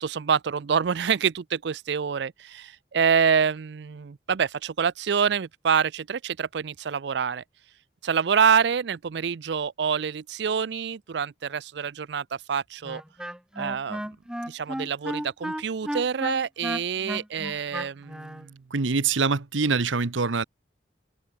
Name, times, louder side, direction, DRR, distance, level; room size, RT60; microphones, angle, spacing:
voice 1, 0.0-7.4 8.0-13.0 13.6-14.0 14.5-18.6, right 7 dB, 65° right, 0.4 m, -26 dB
Wind instrument woodwind instrument, 12.8-18.4, equal, 5° right, 1.1 m, -33 dB
voice 2, 18.7-20.4, right 4 dB, 90° right, 1.0 m, -24 dB
open air
head